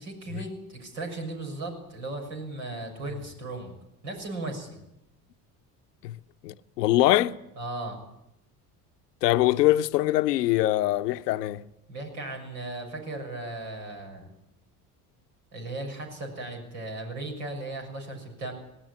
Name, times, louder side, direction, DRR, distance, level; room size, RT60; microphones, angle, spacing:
voice 1, 0.0-3.8 4.0-4.8 7.6-8.0 11.9-14.3 15.5-18.5, right 2 dB, 85° right, 6.9 m, -36 dB
voice 2, 6.4-7.3 9.2-11.6, left 15 dB, 90° left, 0.8 m, -23 dB
19.0 x 18.0 x 9.9 m
hypercardioid pair, 65°, 47 cm